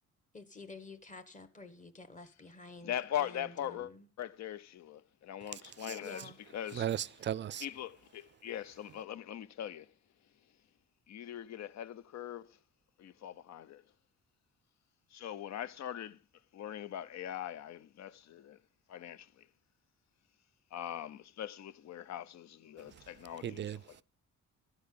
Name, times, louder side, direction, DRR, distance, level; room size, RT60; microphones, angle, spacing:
voice 1, 0.3-4.1 6.0-6.4, left 3 dB, 25° left, 1.3 m, -50 dB
voice 2, 2.8-3.9 4.2-6.2 6.5-6.9 7.6-9.9 11.1-12.6 13.0-13.8 15.1-16.2 16.5-18.6 18.9-19.5 20.7-23.6, left 11 dB, 65° left, 0.7 m, -41 dB
voice 3, 5.4-6.0 6.7-7.7 22.8-23.1 23.4-24.0, right 10 dB, 40° right, 0.4 m, -38 dB
12.5 x 4.7 x 8.5 m
cardioid pair, 90°, 30 cm